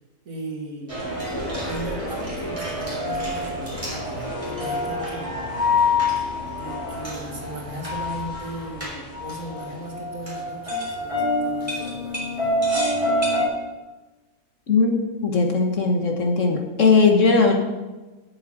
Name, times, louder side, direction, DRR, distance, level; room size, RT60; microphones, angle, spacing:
voice 1, 0.3-1.0 1.6-5.4 6.4-12.6, right 1 dB, 60° right, 0 dB, 2.3 m, -37 dB
sound 1, 0.9-13.5, left 2 dB, 20° right, 3.5 m, -27 dB
voice 2, 14.7-17.5, left 4 dB, 55° left, 2 dB, 1.6 m, -19 dB
8.6 x 7.4 x 7.6 m, 1.2 s
omnidirectional pair, 1.6 m